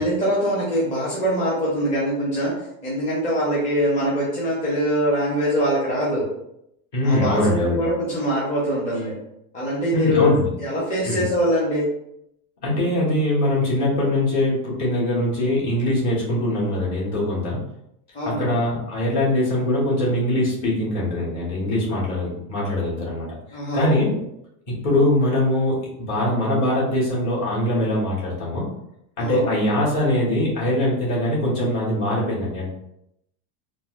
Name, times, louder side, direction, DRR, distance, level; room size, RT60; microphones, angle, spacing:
voice 1, 0.0-2.5 2.8-6.2 7.0-9.1 9.5-10.3 10.6-11.9 18.1-18.6 23.5-23.9 29.2-29.6, equal, 15° left, -8 dB, 0.7 m, -23 dB
voice 2, 6.9-7.8 9.9-10.5 11.0-11.3 12.6-17.6 18.2-24.1 24.7-28.6 29.2-32.7, left 1 dB, 40° left, -5 dB, 1.4 m, -22 dB
4.0 x 2.1 x 2.4 m, 0.78 s
supercardioid pair, 150°, 47 cm